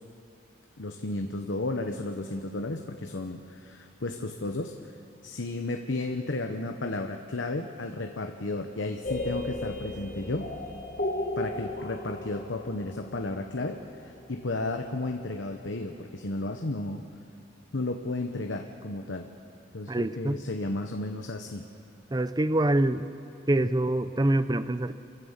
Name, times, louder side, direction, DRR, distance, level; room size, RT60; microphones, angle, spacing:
voice 1, 0.8-4.7 5.2-10.5 11.4-17.0 17.7-19.3 19.7-21.6, left 2 dB, 75° left, 5 dB, 1.1 m, -33 dB
sound 1, 9.0-14.8, left 2 dB, 45° left, 2.0 m, -35 dB
voice 2, 19.9-20.4 22.1-23.1 23.5-24.9, right 1 dB, 20° right, 13 dB, 0.6 m, -25 dB
28.0 x 15.0 x 7.4 m, 2.6 s
head